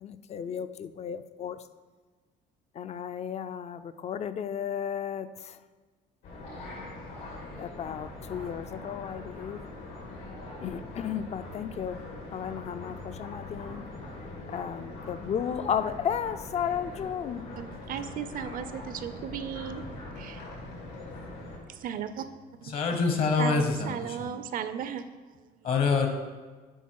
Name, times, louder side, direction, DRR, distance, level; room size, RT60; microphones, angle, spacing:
voice 1, 0.0-1.6 2.8-5.3 7.6-9.6 10.6-12.0 12.3-13.8 14.5-17.4, left 8 dB, 40° left, 12 dB, 0.4 m, -34 dB
sound 1, 6.2-21.6, left 2 dB, 90° left, 2.3 m, -42 dB
voice 2, 17.6-19.9 20.2-20.4 21.7-22.3 22.6-22.7 23.4-25.1, right 8 dB, 55° right, 11 dB, 0.5 m, -35 dB
voice 3, 22.6-24.4 25.6-26.1, left 5 dB, 60° left, 5 dB, 1.1 m, -26 dB
9.9 x 3.9 x 4.6 m, 1.4 s
cardioid pair, 110°, 17 cm